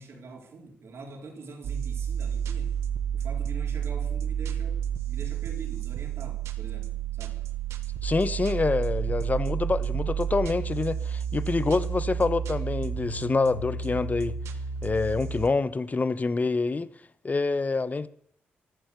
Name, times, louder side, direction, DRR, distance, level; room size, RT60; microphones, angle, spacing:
voice 1, 0.0-2.8 3.1-7.5, right 3 dB, 65° right, 4.2 m, -44 dB
sound 1, 1.6-15.5, right 8 dB, 90° right, 1.3 m, -31 dB
voice 2, 8.0-14.4 14.8-16.9 17.2-18.1, left 3 dB, 35° left, 1.0 m, -26 dB
14.5 x 11.5 x 6.8 m
supercardioid pair, 55°, 5 cm